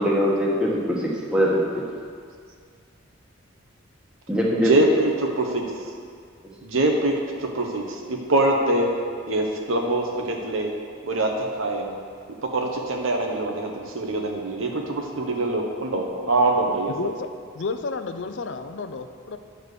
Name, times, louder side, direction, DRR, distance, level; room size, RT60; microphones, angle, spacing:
voice 1, 0.0-1.8 4.3-4.7, equal, 5° right, -4 dB, 1.2 m, -22 dB
voice 2, 4.6-5.7 6.6-8.9 9.3-10.7 11.0-11.9 12.4-16.9, right 2 dB, 75° right, 2 dB, 1.1 m, -24 dB
voice 3, 16.9-17.3 17.5-19.4, left 4 dB, 60° left, 8 dB, 0.5 m, -31 dB
10.5 x 4.5 x 6.7 m, 2.1 s
head